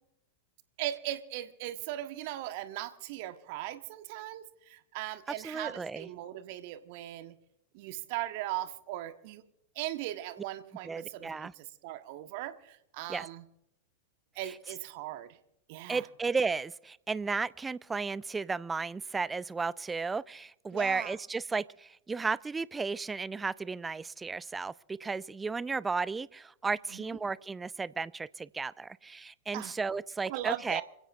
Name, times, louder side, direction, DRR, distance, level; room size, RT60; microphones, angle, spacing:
voice 1, 0.8-7.3 7.7-9.4 9.7-13.4 14.3-15.3 15.7-16.0 20.7-21.1 26.9-27.1 29.5-29.7 30.3-30.8, right 14 dB, 50° right, 1.4 m, -38 dB
voice 2, 5.4-6.1 10.8-11.5 13.1-13.3 14.4-14.6 15.9-30.8, right 4 dB, 15° right, 0.5 m, -34 dB
27.5 x 16.0 x 2.6 m
figure-of-eight pair, 90°, 0 cm